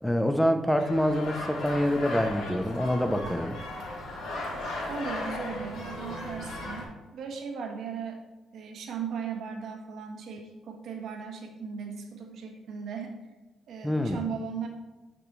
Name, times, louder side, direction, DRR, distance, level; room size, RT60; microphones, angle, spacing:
voice 1, 0.0-3.6 13.8-14.2, equal, 5° left, 7 dB, 0.8 m, -26 dB
sound 1, 0.8-6.8, left 1 dB, 65° left, 2.8 m, -36 dB
voice 2, 4.9-8.2 8.5-13.2 13.7-14.7, right 6 dB, 70° right, 3 dB, 1.4 m, -37 dB
9.9 x 6.1 x 3.3 m, 1.2 s
cardioid pair, 90°, 0 cm